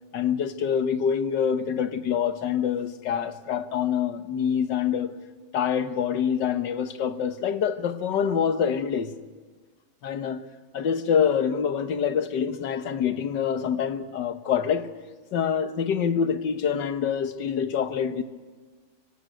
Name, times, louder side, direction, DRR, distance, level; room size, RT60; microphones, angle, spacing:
voice 1, 0.1-5.1 5.5-9.1 10.0-10.4 10.7-14.9 15.3-18.2, left 7 dB, 80° left, 1.8 m, -26 dB
24.5 x 17.0 x 9.3 m
omnidirectional pair, 1.9 m